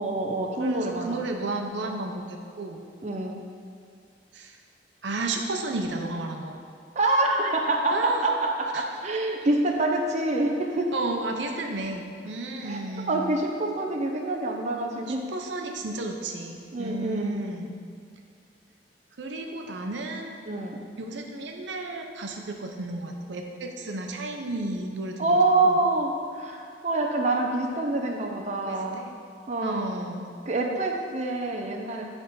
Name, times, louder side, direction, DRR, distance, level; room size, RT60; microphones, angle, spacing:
voice 1, 0.0-1.3 3.0-3.4 7.0-10.9 12.6-12.8 13.1-15.2 16.7-17.5 20.5-20.8 25.2-29.0 29.5-29.9 30.5-32.0, right 2 dB, 40° right, 1 dB, 0.6 m, -26 dB
voice 2, 0.6-2.8 4.3-4.6 5.0-6.6 7.9-8.2 8.7-8.8 10.9-13.2 15.0-17.7 19.2-20.3 21.0-25.4 25.6-25.8 28.6-29.1 29.6-30.3, right 2 dB, 85° right, 2 dB, 0.7 m, -33 dB
9.0 x 3.5 x 5.4 m, 2.4 s
head